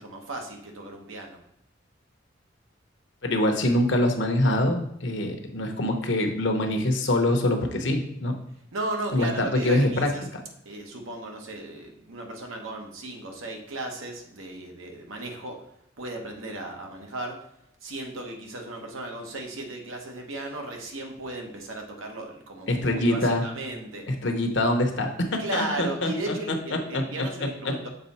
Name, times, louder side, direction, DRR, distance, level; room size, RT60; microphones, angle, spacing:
voice 1, 0.0-1.4 8.7-10.3 10.6-15.7 16.0-17.5 17.8-24.0 25.4-27.9, right 2 dB, 85° right, 2 dB, 1.2 m, -35 dB
voice 2, 3.2-8.3 9.1-10.4 22.7-23.4 24.1-27.0 27.6-27.7, left 1 dB, 65° left, 4 dB, 0.9 m, -25 dB
6.7 x 3.7 x 4.2 m, 0.78 s
head